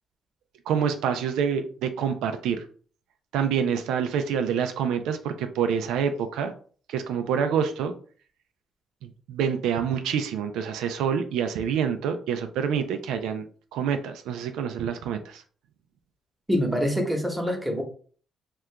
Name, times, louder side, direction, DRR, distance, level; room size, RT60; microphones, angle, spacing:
voice 1, 0.7-2.6 3.3-6.5 6.9-7.9 9.0-13.4 13.7-15.4, right 7 dB, 90° right, 7 dB, 0.3 m, -27 dB
voice 2, 16.5-17.8, equal, 5° right, 2 dB, 0.9 m, -25 dB
2.8 x 2.4 x 3.3 m, 0.43 s
cardioid pair, 90°, 0 cm